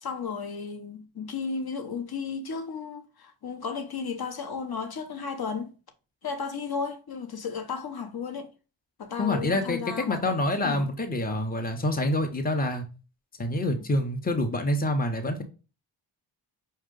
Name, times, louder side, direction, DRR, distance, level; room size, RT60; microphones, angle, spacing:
voice 1, 0.0-5.7 6.2-8.5 9.0-10.4 10.6-10.9 13.8-13.9, left 5 dB, 45° left, 1.0 m, -34 dB
voice 2, 9.2-9.8 10.1-12.8 13.4-15.4, left 1 dB, 20° left, 0.8 m, -27 dB
5.5 x 2.4 x 3.8 m
cardioid pair, 50°, 50 cm